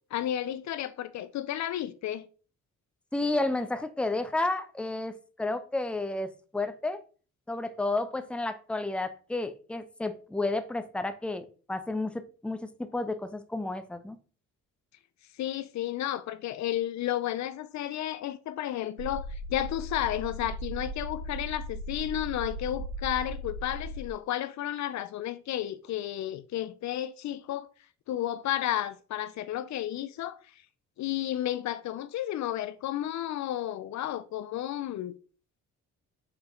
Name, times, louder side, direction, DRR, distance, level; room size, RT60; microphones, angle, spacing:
voice 1, 0.1-2.3 15.4-27.7 28.1-30.6 31.0-35.1, left 12 dB, 65° left, 0.5 m, -32 dB
voice 2, 3.1-7.0 7.5-14.2, left 2 dB, 5° left, 0.6 m, -31 dB
sound 1, 19.0-24.1, equal, 55° right, 0.5 m, -37 dB
6.0 x 4.3 x 3.7 m
cardioid pair, 90°, 30 cm